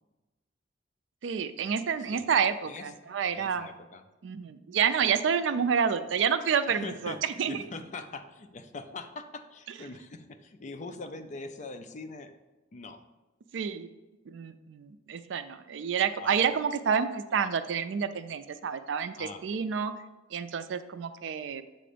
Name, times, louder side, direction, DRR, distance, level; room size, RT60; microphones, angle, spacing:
voice 1, 1.2-3.7 4.2-7.6 13.5-13.9 14.3-19.9 20.3-21.6, right 7 dB, 70° right, 11 dB, 0.4 m, -29 dB
voice 2, 2.7-3.0 3.3-4.0 6.7-7.2 7.5-12.3 12.7-13.0 16.2-16.5 19.2-19.6, left 3 dB, 40° left, 8 dB, 0.4 m, -42 dB
7.5 x 2.6 x 5.0 m, 1.1 s
head